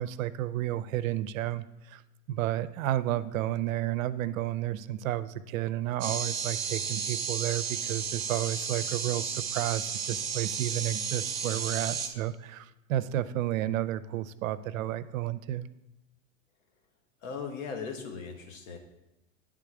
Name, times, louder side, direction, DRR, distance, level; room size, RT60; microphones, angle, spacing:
voice 1, 0.0-2.0 2.3-15.7, right 13 dB, 80° right, 15 dB, 0.5 m, -31 dB
sound 1, 6.0-12.1, right 7 dB, 40° right, 0.9 m, -33 dB
voice 2, 17.2-18.8, left 5 dB, 70° left, 4 dB, 1.3 m, -38 dB
9.9 x 3.7 x 4.8 m, 0.96 s
supercardioid pair, 135°, 40 cm